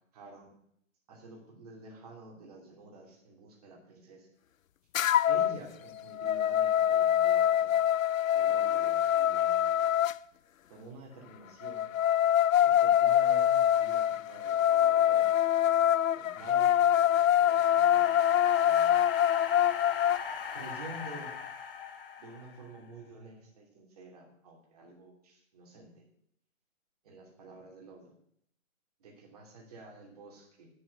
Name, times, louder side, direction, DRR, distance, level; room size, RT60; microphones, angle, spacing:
voice 1, 0.1-0.6 1.1-4.3 5.3-7.8 8.3-9.6 10.7-11.9 12.6-15.3 16.1-16.8 17.3-18.2 18.6-19.0 20.5-21.3 22.2-26.1 27.0-28.1 29.0-30.7, right 2 dB, 30° right, 0 dB, 2.7 m, -49 dB
sound 1, 4.9-5.6 6.0-10.2 11.6-20.2, left 11 dB, 80° left, 0.5 m, -25 dB
sound 2, 16.5-22.8, left 6 dB, 45° left, 1.1 m, -41 dB
9.6 x 6.1 x 8.1 m, 0.70 s
hypercardioid pair, 165°, 40 cm